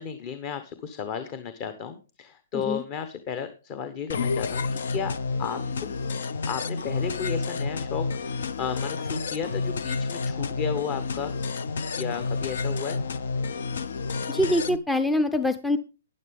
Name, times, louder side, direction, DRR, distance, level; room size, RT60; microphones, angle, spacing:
voice 1, 0.0-5.1 5.4-5.9 6.5-11.3 12.0-13.0, left 7 dB, 35° left, 10 dB, 1.0 m, -33 dB
sound 1, 4.1-14.8, left 4 dB, 75° left, 0.6 m, -30 dB
voice 2, 14.3-15.8, left 1 dB, 5° left, 11 dB, 0.5 m, -24 dB
12.0 x 9.7 x 3.5 m, 0.33 s
hypercardioid pair, 135°, 0 cm